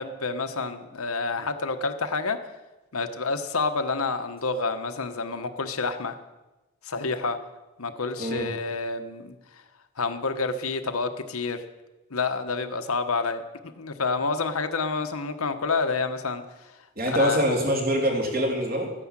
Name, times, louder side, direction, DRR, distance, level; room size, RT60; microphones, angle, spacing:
voice 1, 0.0-2.4 2.9-6.1 6.8-7.4 7.8-9.4 10.0-11.6 12.1-16.4 17.1-17.4, left 4 dB, 85° left, 8 dB, 1.1 m, -28 dB
voice 2, 8.2-8.5 17.0-18.9, equal, 45° right, 0 dB, 3.4 m, -24 dB
13.5 x 9.9 x 7.5 m, 1.1 s
head